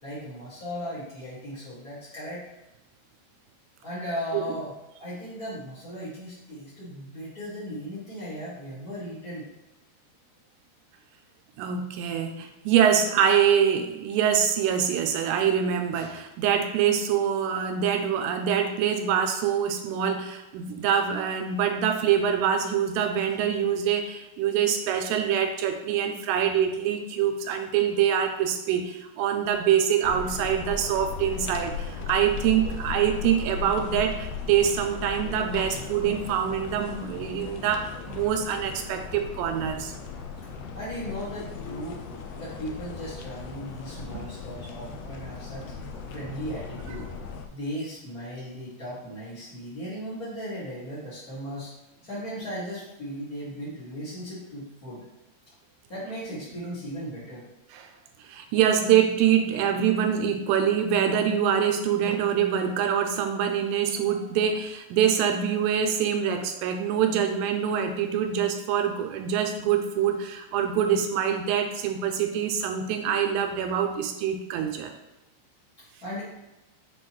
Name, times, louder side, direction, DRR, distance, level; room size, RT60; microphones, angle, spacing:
voice 1, 0.0-2.5 3.8-4.7 5.0-9.5 40.7-42.0 42.3-45.7 46.1-47.1 47.5-51.7 52.0-55.0 55.9-57.4 76.0-76.2, equal, 55° left, -11 dB, 0.9 m, -37 dB
voice 2, 11.6-39.9 44.1-44.3 57.7-57.9 58.2-74.9, right 8 dB, 85° right, 5 dB, 2.6 m, -25 dB
sound 1, 30.0-47.5, left 5 dB, 85° left, 2.2 m, -37 dB
8.1 x 3.9 x 3.1 m, 0.99 s
omnidirectional pair, 5.1 m